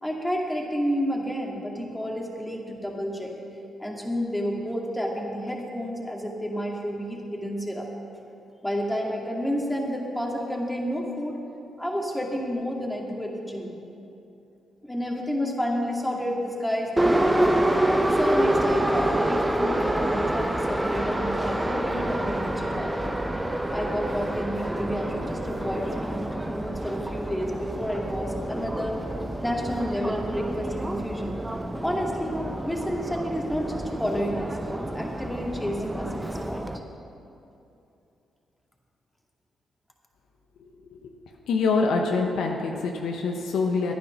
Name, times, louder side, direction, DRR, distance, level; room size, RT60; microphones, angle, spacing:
voice 1, 0.0-3.3 3.8-7.9 8.6-11.4 11.8-13.7 14.8-17.7 18.1-23.2 23.7-29.0 29.4-31.4 31.8-36.7, equal, 10° left, -1 dB, 2.3 m, -30 dB
Subway metro underground, 17.0-36.8, right 1 dB, 15° right, 0.8 m, -27 dB
voice 2, 41.5-43.9, left 4 dB, 70° left, 2 dB, 0.9 m, -25 dB
10.5 x 9.8 x 6.0 m, 2.8 s
hypercardioid pair, 45°, 0 cm